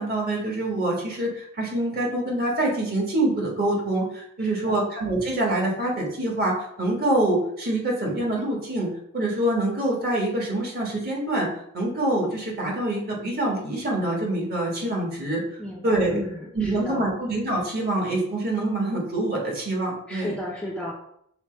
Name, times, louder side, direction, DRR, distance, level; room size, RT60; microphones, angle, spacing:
voice 1, 0.0-8.9 9.1-11.5 11.7-15.4 15.8-16.2 16.5-20.3, right 1 dB, 45° right, -2 dB, 1.4 m, -25 dB
voice 2, 4.4-4.9 15.6-17.2 20.1-20.9, left 1 dB, 5° left, -3 dB, 0.5 m, -34 dB
5.7 x 2.1 x 4.3 m, 0.71 s
head